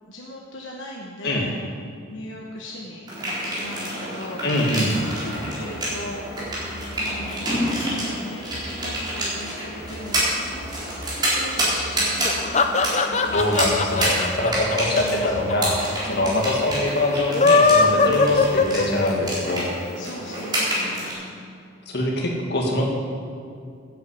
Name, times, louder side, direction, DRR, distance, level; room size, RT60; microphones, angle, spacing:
voice 1, 0.0-1.5 2.1-3.1 3.4-4.4 4.9-14.3 14.9-15.6 16.0-16.5 17.7-18.3 19.4-19.7 20.0-21.3, equal, 75° left, -2 dB, 1.3 m, -38 dB
sound 1, 3.1-21.1, right 1 dB, 20° right, 4.2 m, -28 dB
voice 2, 4.4-4.9 13.3-15.8 16.1-19.7 21.9-22.8, left 1 dB, 55° left, -1 dB, 2.2 m, -23 dB
sound 2, 5.0-7.2 7.5-7.8 8.4-9.3 9.7-12.7 13.2-14.1 14.3-15.4 15.7-16.4 16.7-17.2 17.6-17.8 18.3-18.9, left 1 dB, 10° left, 2.3 m, -42 dB
sound 3, 12.2-15.5 15.8-15.9 16.1-16.2 17.2-19.3, left 4 dB, 35° left, 0.7 m, -19 dB
10.5 x 9.1 x 8.4 m, 2.4 s
head